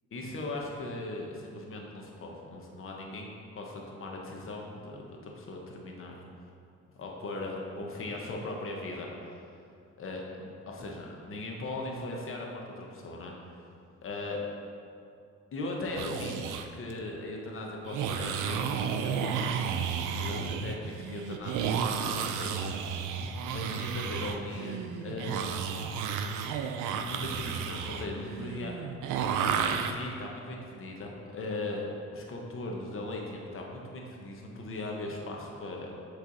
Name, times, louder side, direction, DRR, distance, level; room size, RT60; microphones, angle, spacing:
voice 1, 0.1-3.3 3.5-6.3 7.0-9.1 10.0-13.3 14.0-14.4 15.5-19.4 20.2-23.0 23.5-25.7 27.0-28.7 29.9-31.9 32.1-35.9, left 2 dB, 45° left, 0 dB, 1.0 m, -39 dB
sound 1, 15.9-16.7 17.8-29.9, right 6 dB, 85° right, 0.5 m, -32 dB
7.5 x 3.3 x 4.0 m, 2.5 s
cardioid pair, 90°, 30 cm